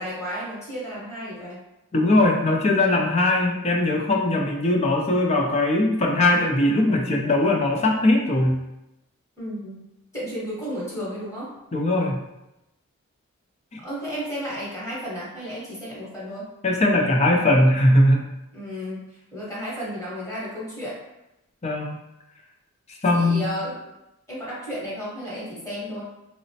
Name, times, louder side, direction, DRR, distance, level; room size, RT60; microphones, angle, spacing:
voice 1, 0.0-1.6 9.4-9.8 10.1-11.5 13.8-16.5 18.5-21.0 23.1-23.8 24.3-26.0, equal, 15° left, -7 dB, 1.0 m, -33 dB
voice 2, 1.9-8.6 11.7-12.2 16.6-18.2 21.6-22.0 23.0-23.4, left 1 dB, 30° left, 0 dB, 0.4 m, -20 dB
4.0 x 2.0 x 2.7 m, 0.91 s
head